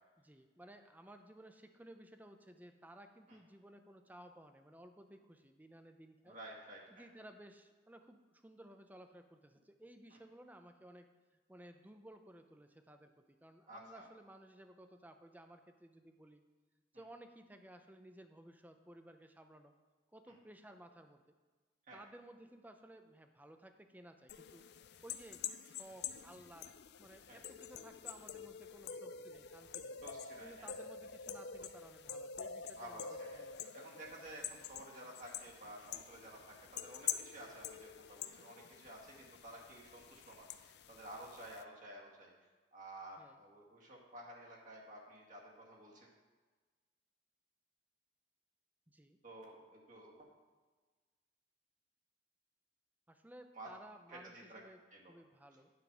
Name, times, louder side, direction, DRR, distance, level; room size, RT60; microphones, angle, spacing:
voice 1, 0.2-6.4 6.9-11.1 11.5-16.4 16.9-19.7 20.1-21.2 21.9-24.6 25.0-26.7 27.0-30.0 30.4-33.1 33.3-33.6 43.2-43.4 48.9-49.2 53.1-54.8 55.1-55.7, right 1 dB, 10° right, 7 dB, 0.6 m, -57 dB
voice 2, 6.3-7.1 13.7-14.1 20.3-20.4 21.9-22.0 27.3-27.4 30.0-30.7 32.8-33.5 33.7-42.3 42.7-46.1 49.2-50.3 53.6-53.7 54.1-54.6 54.9-55.1, right 1 dB, 45° right, -2 dB, 1.9 m, -52 dB
sound 1, 24.3-41.6, left 8 dB, 60° left, 0.4 m, -47 dB
9.3 x 5.2 x 6.0 m, 1.4 s
head